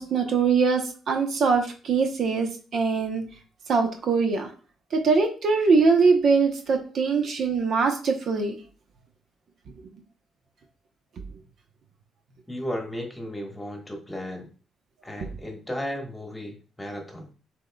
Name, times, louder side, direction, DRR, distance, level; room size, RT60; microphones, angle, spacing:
voice 1, 0.0-3.2 3.7-4.5 4.9-8.6, right 4 dB, 60° right, 4 dB, 0.9 m, -22 dB
voice 2, 12.5-14.4 15.0-17.3, equal, 10° left, 2 dB, 1.4 m, -34 dB
6.1 x 3.7 x 2.3 m, 0.37 s
cardioid pair, 90°, 0 cm